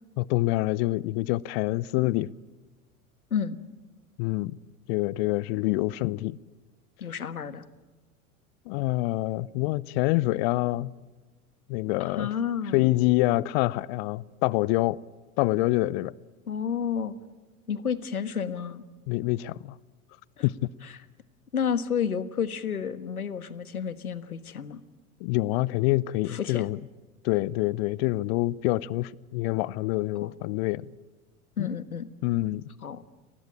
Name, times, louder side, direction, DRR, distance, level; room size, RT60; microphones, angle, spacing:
voice 1, 0.2-2.3 4.2-4.6 4.9-6.4 8.7-10.9 11.7-12.3 12.7-15.0 15.4-16.1 19.1-19.8 20.4-20.7 25.2-26.8 27.2-30.9 31.6-31.7 32.2-32.7, left 19 dB, 45° left, 0.7 m, -26 dB
voice 2, 7.0-7.7 12.0-12.9 16.5-17.1 17.7-18.8 20.4-20.5 20.8-20.9 21.5-24.8 26.3-26.7 30.2-30.3 31.6-32.1 32.8-33.1, left 7 dB, 80° left, 1.5 m, -31 dB
30.0 x 20.0 x 8.8 m
figure-of-eight pair, 85°, 43 cm